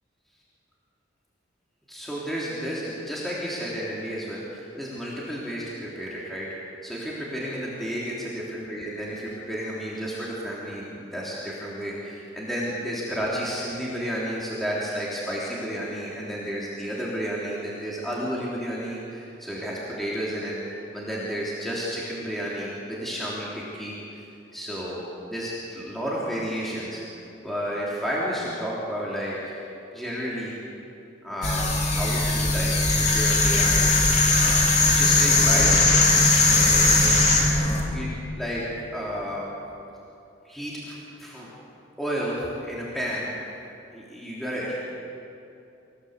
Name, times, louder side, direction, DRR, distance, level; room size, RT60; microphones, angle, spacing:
voice 1, 1.9-24.2 24.5-25.0 25.3-29.6 29.9-30.5 31.2-32.7 33.1-33.9 34.3-35.9 36.5-37.3 37.9-39.5 40.4-41.5 42.0-43.4 43.9-44.8, equal, ahead, -7 dB, 3.4 m, -32 dB
sound 1, 31.4-37.8, left 2 dB, 35° left, 3.5 m, -19 dB
26.5 x 17.0 x 8.2 m, 2.7 s
head